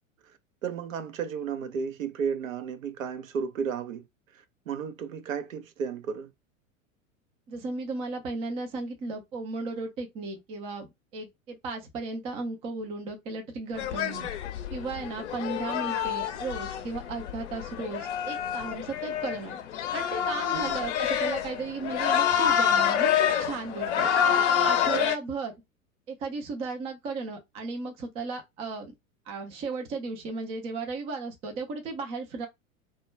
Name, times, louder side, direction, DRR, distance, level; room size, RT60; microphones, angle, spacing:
voice 1, 0.6-4.0 4.7-6.3 20.5-20.8 24.9-25.0, right 6 dB, 70° right, 0.6 m, -33 dB
voice 2, 7.5-10.9 11.1-14.3 14.7-19.6 19.9-24.1 24.5-25.5 26.1-28.9 29.3-32.5, right 3 dB, 15° right, 0.4 m, -35 dB
sound 1, 13.8-25.2, left 8 dB, 55° left, 0.6 m, -27 dB
2.2 x 2.1 x 3.0 m
figure-of-eight pair, 90°, 42 cm